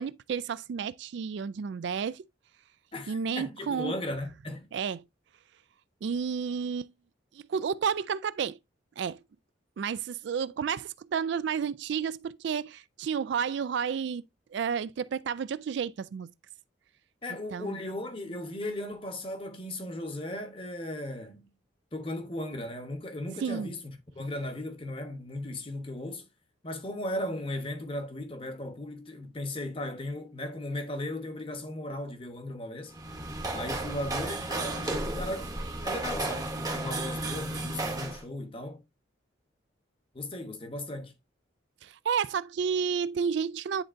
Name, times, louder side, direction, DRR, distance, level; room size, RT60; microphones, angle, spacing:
voice 1, 0.0-2.2 3.1-3.9 4.7-5.0 6.0-6.9 7.3-8.6 9.0-9.2 9.8-14.2 14.5-16.3 17.5-17.8 23.4-23.7 41.8-43.8, right 6 dB, 65° right, 0.3 m, -31 dB
voice 2, 2.9-4.7 17.2-21.5 21.9-26.3 26.6-32.9 33.5-35.5 35.8-38.8 40.1-41.1, left 1 dB, 25° left, 1.0 m, -36 dB
sound 1, 32.9-38.2, right 2 dB, 20° right, 0.9 m, -33 dB
9.9 x 3.9 x 2.5 m
head